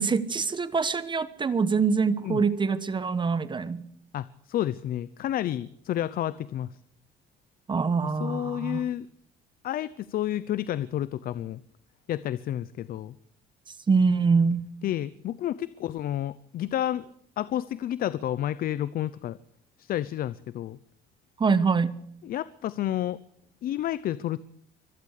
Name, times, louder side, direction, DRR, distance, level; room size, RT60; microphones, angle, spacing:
voice 1, 0.0-3.8 7.7-8.8 13.9-14.7 21.4-21.9, right 5 dB, 30° right, 14 dB, 1.2 m, -24 dB
voice 2, 4.1-6.8 8.0-9.1 9.6-11.6 12.1-13.1 14.8-17.1 17.4-19.4 19.8-20.8 22.2-23.2 23.6-24.4, left 12 dB, 60° left, 17 dB, 0.8 m, -30 dB
24.5 x 18.0 x 6.7 m, 0.68 s
cardioid pair, 110°, 17 cm